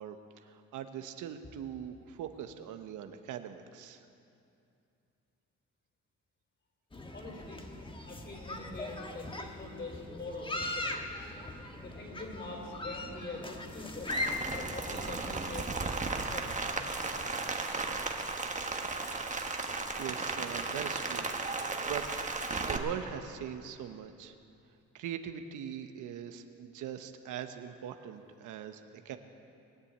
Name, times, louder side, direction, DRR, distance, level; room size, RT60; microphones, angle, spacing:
voice 1, 0.0-4.0 20.0-21.3 21.8-22.1 22.6-24.3 24.9-29.2, right 9 dB, 85° right, 8 dB, 1.0 m, -41 dB
sound 1, 6.9-15.6, left 1 dB, 15° left, 1.3 m, -40 dB
voice 2, 7.1-7.6 8.0-11.3 11.8-14.1 14.5-17.3, left 2 dB, 35° left, 1 dB, 4.6 m, -44 dB
Rain, 14.1-22.8, right 3 dB, 25° right, 1.3 m, -35 dB
21.0 x 7.0 x 8.8 m, 2.6 s
cardioid pair, 90°, 30 cm